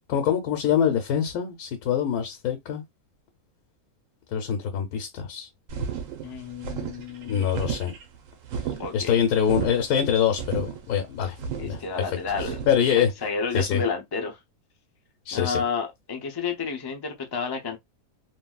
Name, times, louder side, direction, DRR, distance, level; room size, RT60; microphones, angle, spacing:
voice 1, 0.1-2.8 4.3-5.5 7.2-7.9 8.9-11.4 11.6-11.8 12.7-13.1 13.5-13.8 15.3-15.6, left 8 dB, 85° left, 1.2 m, -24 dB
sound 1, 5.7-12.7, right 7 dB, 65° right, 1.0 m, -33 dB
voice 2, 6.2-7.5 8.8-9.2 11.6-12.6 13.0-14.4 15.3-17.8, left 5 dB, 35° left, 0.3 m, -31 dB
3.0 x 2.7 x 2.2 m
omnidirectional pair, 1.5 m